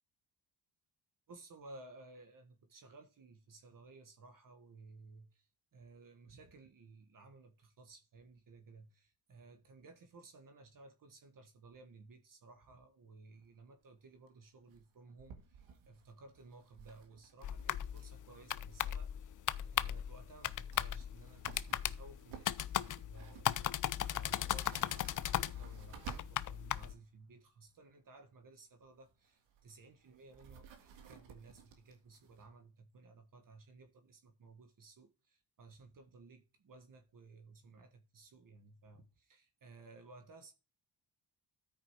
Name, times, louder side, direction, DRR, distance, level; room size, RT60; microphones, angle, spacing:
voice 1, 1.3-19.3 19.6-40.5, right 3 dB, 45° right, 1.5 m, -57 dB
sound 1, 13.4-13.5 13.7-13.8 14.1-14.3 14.7-18.3 18.5-18.6 20.3-20.4 20.6-27.0 28.9-32.5, right 6 dB, 85° right, 1.9 m, -56 dB
sound 2, 17.4-26.9, left 11 dB, 45° left, 0.5 m, -37 dB
13.0 x 5.0 x 4.7 m
cardioid pair, 85°, 45 cm